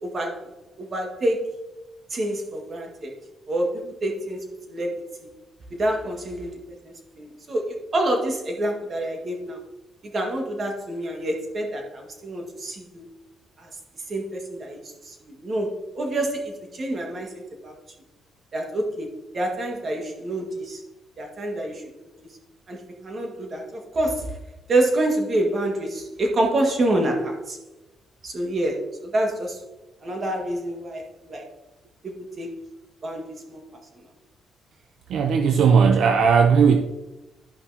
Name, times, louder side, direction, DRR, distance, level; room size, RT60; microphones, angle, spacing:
voice 1, 0.0-0.4 0.8-1.5 2.1-3.1 3.5-5.3 5.7-9.6 10.0-13.1 13.6-13.7 14.1-17.3 17.6-17.8 18.5-20.8 21.2-21.8 22.2-22.3 22.7-24.4 24.7-27.6 28.2-29.6 30.0-31.5 32.0-32.6 33.0-33.6 33.9-34.0, right 1 dB, 45° right, 2 dB, 1.8 m, -27 dB
voice 2, 35.1-36.8, right 6 dB, 70° right, 5 dB, 0.5 m, -17 dB
11.5 x 5.5 x 2.8 m, 1.0 s
cardioid pair, 90°, 0 cm